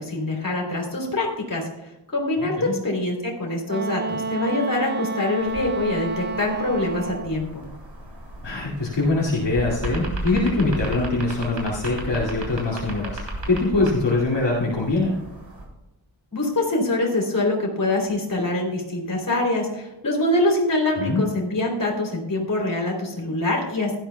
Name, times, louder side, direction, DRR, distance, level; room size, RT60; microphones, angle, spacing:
voice 1, 0.0-1.7 2.1-7.6 16.3-24.0, left 2 dB, 45° left, -1 dB, 3.3 m, -24 dB
Wind instrument woodwind instrument, 3.7-7.4, right 4 dB, 25° right, 0.5 m, -30 dB
sound 1, 5.4-15.7, right 1 dB, 85° right, 3.4 m, -35 dB
voice 2, 8.4-13.2 13.5-15.1 21.0-21.2, left 2 dB, 65° left, -5 dB, 2.3 m, -23 dB
16.5 x 12.5 x 2.3 m, 0.94 s
wide cardioid pair, 110°, 45 cm